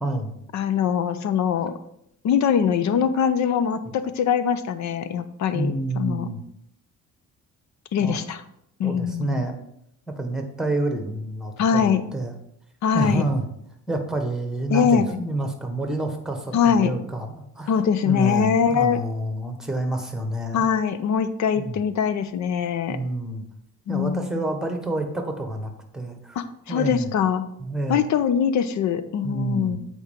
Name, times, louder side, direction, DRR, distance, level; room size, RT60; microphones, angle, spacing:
voice 1, 0.0-0.3 5.5-6.4 8.0-8.2 8.8-9.6 10.2-12.3 12.9-13.4 13.9-17.8 18.0-20.7 21.5-21.8 22.9-23.4 23.9-26.4 26.7-27.1 27.6-28.0 29.2-29.8, right 2 dB, ahead, 4 dB, 1.3 m, -28 dB
voice 2, 0.5-1.7 2.2-6.3 7.9-8.4 8.8-9.4 11.6-12.0 12.8-13.2 14.7-15.2 16.5-17.0 17.7-19.0 20.5-23.0 23.9-24.4 26.4-27.5 27.9-29.8, left 7 dB, 65° left, 12 dB, 0.7 m, -22 dB
8.1 x 4.5 x 3.6 m, 0.74 s
cardioid pair, 90°, 30 cm